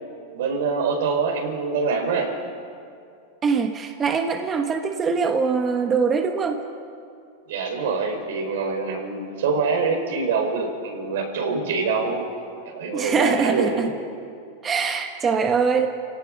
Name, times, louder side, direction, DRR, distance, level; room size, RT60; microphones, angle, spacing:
voice 1, 0.3-2.3 7.5-12.2 12.6-13.9, right 4 dB, 75° right, 3 dB, 4.7 m, -25 dB
voice 2, 3.4-6.6 12.9-13.9 14.6-15.9, right 5 dB, 20° right, 5 dB, 1.1 m, -23 dB
28.0 x 17.0 x 6.3 m, 2.4 s
supercardioid pair, 150°, 0 cm